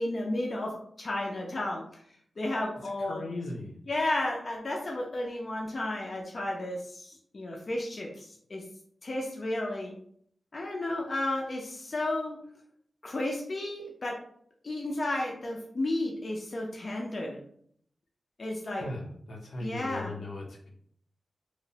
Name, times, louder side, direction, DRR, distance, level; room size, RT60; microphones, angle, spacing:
voice 1, 0.0-1.8 2.4-3.2 3.9-8.6 9.0-9.9 10.5-12.4 13.0-14.2 14.6-17.4 18.4-18.8 19.6-20.2, left 1 dB, 40° left, -1 dB, 0.4 m, -33 dB
voice 2, 3.1-3.8 18.8-20.7, left 2 dB, 85° left, -2 dB, 0.7 m, -38 dB
2.9 x 2.0 x 2.6 m, 0.64 s
wide cardioid pair, 180°, 0 cm